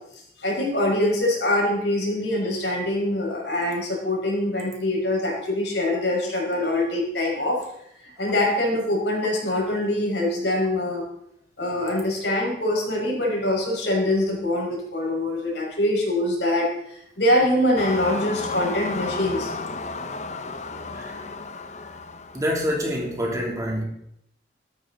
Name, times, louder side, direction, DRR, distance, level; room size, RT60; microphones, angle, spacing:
voice 1, 0.4-7.6 8.0-11.1 11.6-19.5, left 1 dB, 90° left, -2 dB, 5.6 m, -24 dB
sound 1, 17.8-22.7, left 3 dB, 40° left, 0.8 m, -33 dB
voice 2, 22.3-23.8, equal, 20° right, -2 dB, 3.2 m, -26 dB
13.5 x 13.0 x 4.1 m, 0.76 s
head